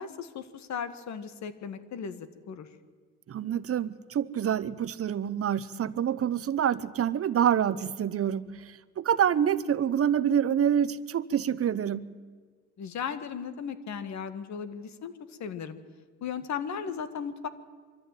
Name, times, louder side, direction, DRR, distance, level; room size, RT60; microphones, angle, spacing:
voice 1, 0.0-2.7 12.8-15.8 16.2-17.5, left 7 dB, 65° left, 11 dB, 1.7 m, -36 dB
voice 2, 3.3-12.1, right 9 dB, 50° right, 17 dB, 0.8 m, -27 dB
23.5 x 14.0 x 9.1 m, 1.5 s
cardioid pair, 90°, 30 cm